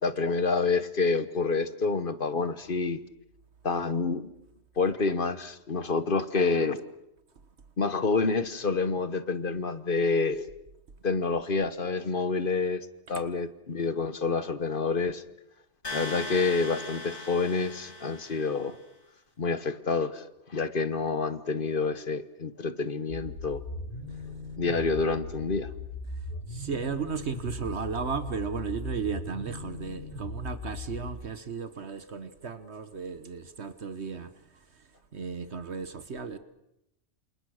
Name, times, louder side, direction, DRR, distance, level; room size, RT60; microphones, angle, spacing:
voice 1, 0.0-3.0 3.6-4.3 4.8-6.8 7.8-10.5 11.0-15.2 15.9-18.8 19.4-23.6 24.6-25.7, left 4 dB, 45° left, 1.3 m, -28 dB
sound 1, 15.8-18.8, left 2 dB, 60° left, 6.5 m, -39 dB
sound 2, 23.1-31.1, left 3 dB, 80° left, 6.1 m, -39 dB
voice 2, 26.1-36.4, right 6 dB, 60° right, 1.4 m, -35 dB
28.0 x 28.0 x 6.5 m
omnidirectional pair, 1.3 m